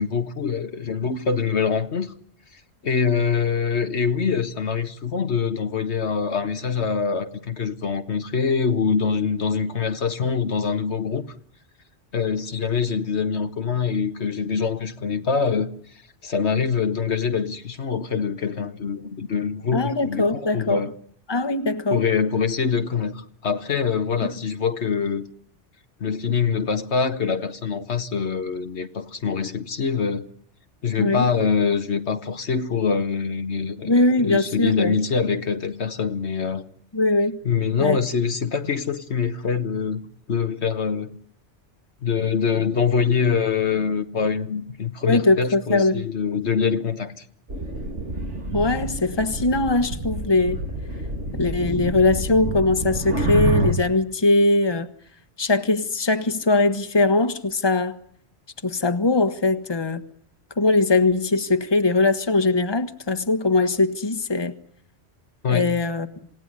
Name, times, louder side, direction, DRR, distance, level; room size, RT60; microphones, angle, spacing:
voice 1, 0.0-2.1 2.8-11.3 12.1-20.9 21.9-25.3 26.0-30.3 30.8-36.6 37.4-41.2 42.0-47.2 65.4-65.7, left 6 dB, 70° left, 1.6 m, -24 dB
voice 2, 19.7-20.8 21.3-22.0 31.0-31.3 33.8-34.9 36.9-37.4 37.8-38.0 45.1-46.0 48.5-50.6 51.3-54.9 55.4-58.0 58.6-60.0 60.6-64.5 65.5-66.1, left 2 dB, 20° left, 1.4 m, -21 dB
sound 1, 47.5-53.7, right 1 dB, 85° right, 3.8 m, -28 dB
27.5 x 17.5 x 9.8 m
omnidirectional pair, 1.2 m